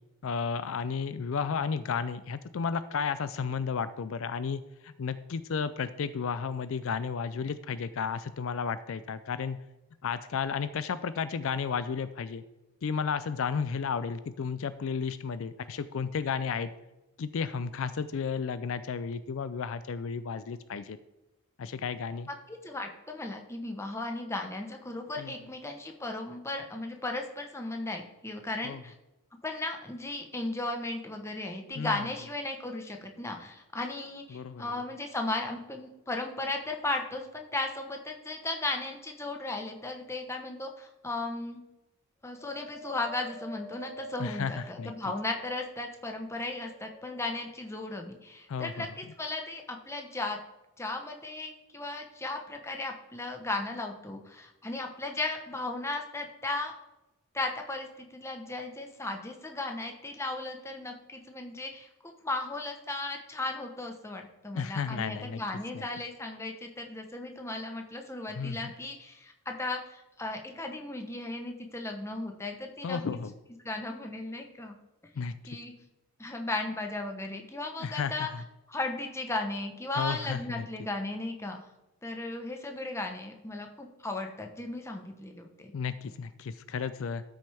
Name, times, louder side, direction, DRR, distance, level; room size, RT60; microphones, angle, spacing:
voice 1, 0.2-9.6 10.0-12.4 12.8-16.7 17.2-21.0 21.6-22.3 25.2-25.3 28.6-28.8 31.7-32.1 34.3-34.7 44.2-44.9 48.5-48.9 64.5-65.4 65.7-65.9 68.3-68.7 72.8-73.3 75.2-75.6 77.8-78.4 79.9-80.7 85.7-87.2, left 6 dB, 60° left, 13 dB, 0.4 m, -33 dB
voice 2, 22.5-28.9 29.4-41.6 42.2-50.4 50.8-56.8 57.3-61.9 62.2-73.0 73.6-74.8 75.5-75.7 76.2-78.3 78.7-81.7 82.0-85.7, left 2 dB, 10° left, 3 dB, 0.9 m, -36 dB
Wind, 42.3-45.9 46.4-47.5 48.2-48.3, equal, 15° right, 3.7 m, -47 dB
13.0 x 6.3 x 3.4 m, 0.99 s
head